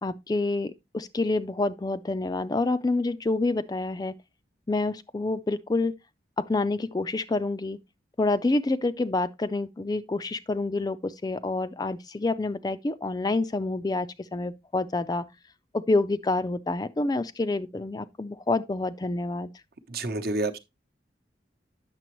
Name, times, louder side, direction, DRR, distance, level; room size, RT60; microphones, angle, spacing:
voice 1, 0.0-4.1 4.7-5.9 6.4-7.8 8.2-15.2 15.7-19.5, left 2 dB, 20° left, 0.3 m, -27 dB
voice 2, 19.9-20.6, right 2 dB, 55° right, 0.9 m, -28 dB
9.1 x 6.8 x 3.0 m
head